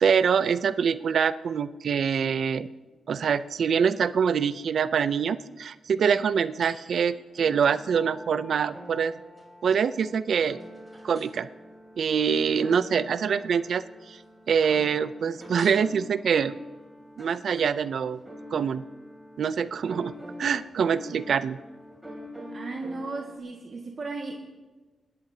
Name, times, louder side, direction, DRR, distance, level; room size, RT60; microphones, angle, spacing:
voice 1, 0.0-2.7 3.1-9.1 9.6-10.6 11.0-11.5 12.0-14.2 14.5-16.6 17.2-18.2 18.5-18.8 19.4-20.1 20.4-21.6, right 7 dB, 65° right, 14 dB, 0.4 m, -25 dB
sound 1, 6.6-7.1 7.4-23.4, equal, 5° right, 2.9 m, -45 dB
voice 2, 22.5-24.4, right 3 dB, 45° right, -1 dB, 1.8 m, -35 dB
25.0 x 10.5 x 2.8 m, 1.2 s
wide cardioid pair, 115°, 0 cm